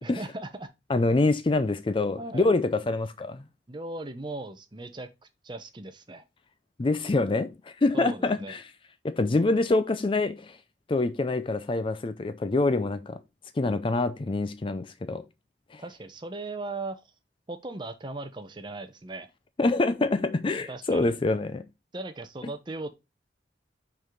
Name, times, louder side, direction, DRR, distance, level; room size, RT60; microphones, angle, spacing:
voice 1, 0.0-0.7 2.2-2.5 3.7-5.1 5.4-6.2 7.9-8.5 15.8-17.0 17.5-19.3 20.7-21.1 21.9-22.9, right 2 dB, 25° right, 0.8 m, -38 dB
voice 2, 0.9-3.4 6.8-8.6 9.0-10.6 10.9-13.2 13.6-15.2 15.7-15.8 19.6-21.7, left 2 dB, 30° left, 0.4 m, -26 dB
5.3 x 4.8 x 3.7 m
head